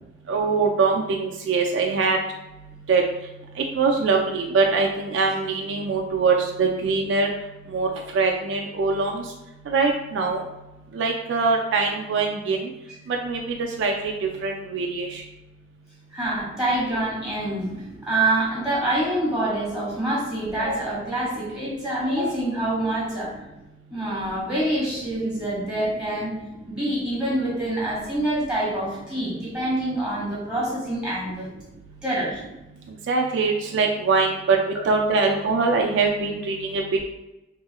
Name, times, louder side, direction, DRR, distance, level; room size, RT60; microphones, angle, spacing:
voice 1, 0.3-2.2 2.9-3.0 3.8-7.3 7.7-7.9 8.1-9.2 9.7-10.4 10.9-12.6 13.1-13.4 13.8-13.9 14.4-15.2 33.1-34.6 34.9-37.0, right 4 dB, 85° right, 1 dB, 0.3 m, -22 dB
voice 2, 16.1-23.4 23.9-26.3 26.7-31.5 32.0-32.4, right 1 dB, 5° right, -7 dB, 1.4 m, -26 dB
3.0 x 2.9 x 2.3 m, 0.97 s
head